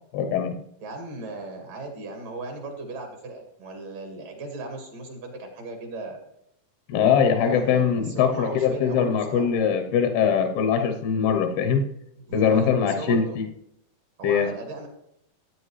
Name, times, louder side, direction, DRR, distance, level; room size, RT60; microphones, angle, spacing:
voice 1, 0.1-0.5 6.9-11.9 12.3-13.4 14.2-14.5, left 7 dB, 85° left, 6 dB, 2.8 m, -22 dB
voice 2, 0.8-6.2 7.4-9.5 12.3-13.4 14.2-14.9, right 2 dB, 65° right, 2 dB, 3.3 m, -37 dB
16.0 x 9.0 x 3.2 m, 0.75 s
omnidirectional pair, 4.3 m